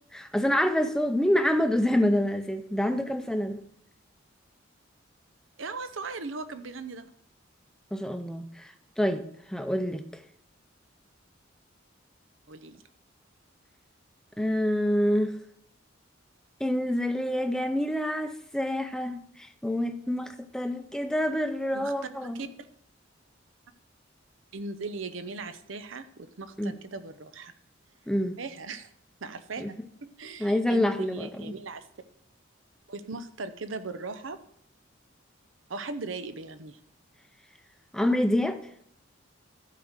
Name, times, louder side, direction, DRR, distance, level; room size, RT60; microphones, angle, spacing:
voice 1, 0.1-3.6 7.9-10.1 14.4-15.4 16.6-22.4 26.6-26.7 28.1-28.4 29.6-29.7 30.4-31.5 37.9-38.6, left 1 dB, 5° left, 0.6 m, -27 dB
voice 2, 5.6-7.1 12.5-12.8 21.7-21.9 22.2-22.5 24.5-27.5 28.4-28.9 29.2-29.7 30.0-31.8 32.9-34.4 35.7-36.8, right 3 dB, 85° right, 0.8 m, -38 dB
12.0 x 4.8 x 6.5 m
head